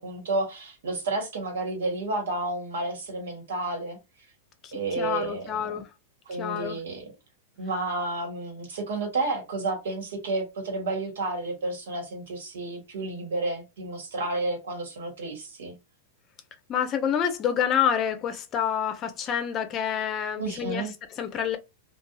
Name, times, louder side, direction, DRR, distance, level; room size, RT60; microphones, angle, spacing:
voice 1, 0.0-4.0 4.7-5.7 6.3-7.0 7.6-15.8 20.4-20.9, right 2 dB, 85° right, 1.3 m, -31 dB
voice 2, 4.6-5.9 6.3-6.8 16.7-21.6, left 8 dB, 35° left, 0.6 m, -28 dB
2.7 x 2.3 x 2.3 m
hypercardioid pair, 125°, 0 cm